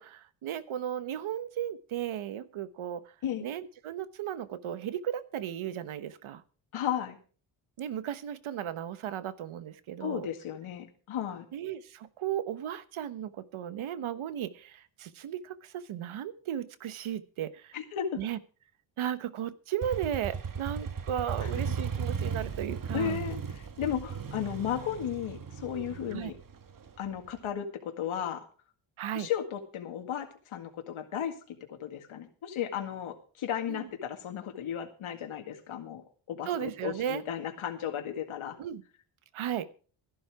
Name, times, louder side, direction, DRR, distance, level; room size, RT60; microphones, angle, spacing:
voice 1, 0.0-3.1 3.4-6.4 7.8-10.3 11.5-17.8 18.2-18.4 19.0-23.2 26.1-26.3 29.0-29.3 33.7-33.9 36.5-37.2 38.6-38.8 39.3-39.6, right 10 dB, 70° right, 14 dB, 1.2 m, -35 dB
voice 2, 6.7-7.2 10.0-11.5 17.7-18.2 21.4-21.5 22.9-26.3 27.0-28.4 29.1-38.6, left 9 dB, 75° left, 3 dB, 2.0 m, -35 dB
Motorcycle, 19.8-27.5, right 6 dB, 40° right, 1.5 m, -36 dB
14.0 x 11.5 x 4.8 m, 0.40 s
cardioid pair, 90°, 49 cm